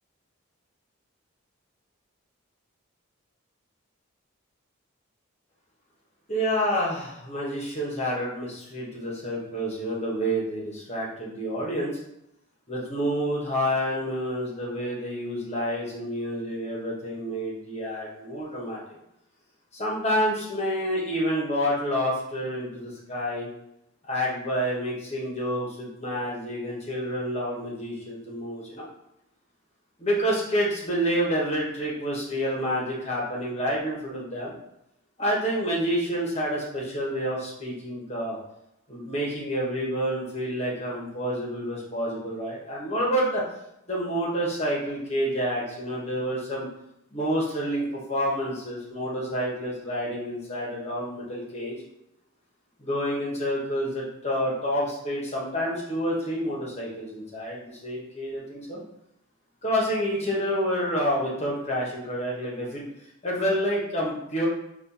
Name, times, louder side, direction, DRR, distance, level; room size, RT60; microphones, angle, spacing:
voice 1, 6.3-12.0 12.7-18.8 19.7-23.5 24.1-28.9 30.0-34.5 35.2-38.4 38.9-43.4 43.9-46.7 47.1-51.8 52.8-58.8 59.6-62.9 63.2-64.5, equal, 30° left, -4 dB, 1.1 m, -28 dB
4.2 x 2.5 x 4.1 m, 0.82 s
head